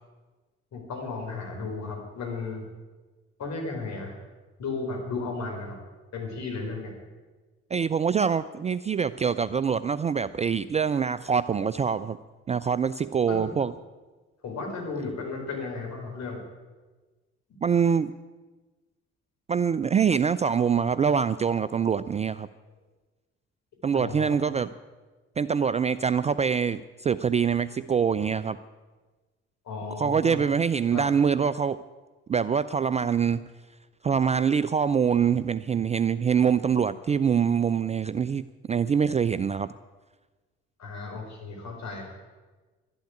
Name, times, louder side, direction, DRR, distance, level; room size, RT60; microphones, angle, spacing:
voice 1, 0.7-2.6 3.4-4.2 4.6-5.8 6.1-6.9 13.3-13.5 14.4-16.4 23.9-24.5 29.6-30.4 30.9-31.1 40.8-42.1, left 3 dB, 50° left, 1 dB, 4.5 m, -34 dB
voice 2, 7.7-12.2 12.5-13.7 17.6-18.1 19.5-22.5 23.8-24.7 25.4-28.6 30.0-31.8 32.3-33.4 34.0-39.7, right 7 dB, 20° right, 15 dB, 0.4 m, -24 dB
11.5 x 11.5 x 9.7 m, 1.3 s
figure-of-eight pair, 40°, 34 cm